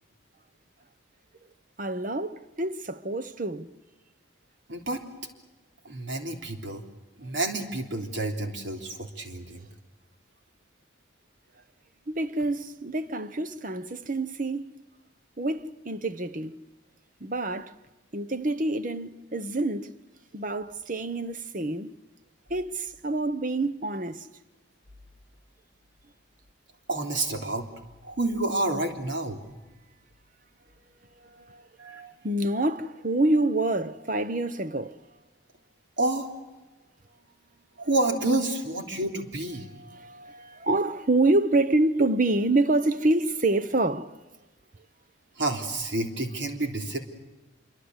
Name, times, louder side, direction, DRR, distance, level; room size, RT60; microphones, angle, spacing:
voice 1, 1.8-3.7 12.1-14.7 15.4-16.6 17.2-17.7 18.1-19.9 20.3-21.9 22.5-24.3 31.2-31.7 32.2-35.0 39.7-44.1, right 2 dB, 40° right, 1.0 m, -27 dB
voice 2, 4.7-5.0 5.8-6.8 7.2-9.6 26.9-27.7 28.0-29.4 31.8-32.1 36.0-36.3 37.8-39.7 45.4-47.0, right 2 dB, 70° right, 3.5 m, -29 dB
27.0 x 24.0 x 8.2 m
head